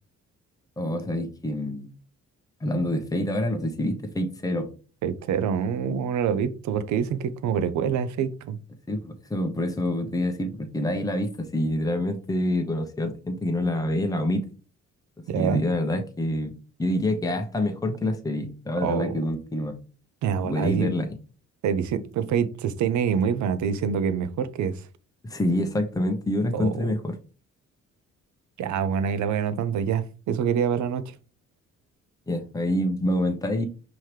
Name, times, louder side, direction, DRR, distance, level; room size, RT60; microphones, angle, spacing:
voice 1, 0.8-1.9 2.6-4.7 8.9-14.5 15.3-16.5 16.8-19.8 20.4-21.2 25.2-27.2 32.3-33.7, left 1 dB, 10° left, 0.9 m, -27 dB
voice 2, 5.0-8.6 15.3-15.6 18.8-19.2 20.2-20.9 21.6-24.9 26.5-26.9 28.6-31.2, right 7 dB, 70° right, 0.6 m, -26 dB
5.6 x 3.0 x 3.2 m
cardioid pair, 90°, 30 cm